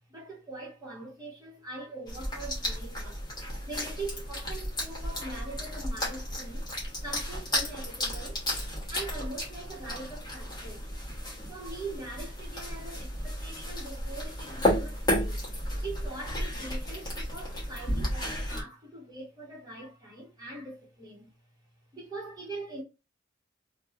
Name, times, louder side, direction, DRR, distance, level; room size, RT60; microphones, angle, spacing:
voice 1, 0.1-3.2 3.6-6.7 7.0-8.4 8.9-10.9 11.5-15.4 15.8-21.3 21.9-22.8, right 2 dB, 20° right, 1.1 m, -42 dB
sound 1, 2.1-18.6, left 1 dB, 20° left, 1.0 m, -33 dB
2.7 x 2.3 x 2.7 m
head